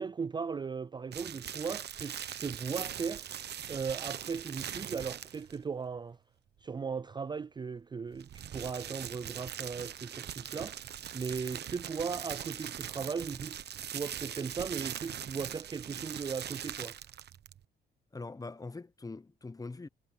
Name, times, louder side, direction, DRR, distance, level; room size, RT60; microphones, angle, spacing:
voice 1, 0.0-3.3 3.7-6.2 6.6-10.8 11.1-13.6 13.9-16.9, right 5 dB, 20° right, 0.4 m, -37 dB
sound 1, 1.1-5.6 8.1-17.6, right 9 dB, 55° right, 1.0 m, -41 dB
voice 2, 18.1-19.9, left 3 dB, 20° left, 1.0 m, -43 dB
cardioid pair, 90°, 20 cm